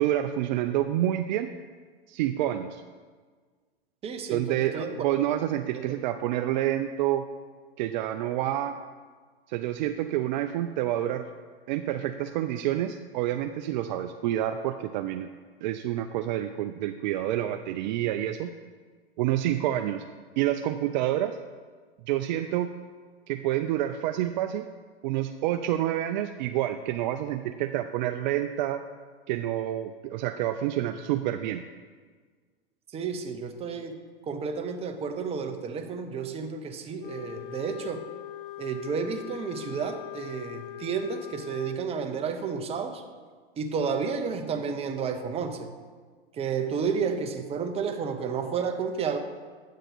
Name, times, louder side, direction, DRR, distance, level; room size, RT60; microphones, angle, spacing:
voice 1, 0.0-1.5 2.1-2.8 4.3-7.2 7.8-8.8 9.5-11.3 11.7-15.3 15.6-18.5 19.2-20.0 20.4-21.4 22.1-22.7 23.3-24.7 25.0-28.8 29.3-31.6, right 12 dB, 50° right, 7 dB, 0.4 m, -28 dB
voice 2, 4.0-4.9 5.7-5.9 32.9-33.9 34.3-38.0 38.6-43.0 43.6-45.7 46.3-49.2, right 6 dB, 20° right, 5 dB, 0.7 m, -31 dB
Wind instrument woodwind instrument, 37.0-41.8, left 14 dB, 65° left, 0.5 m, -41 dB
9.1 x 6.5 x 3.9 m, 1.5 s
hypercardioid pair, 120°, 30 cm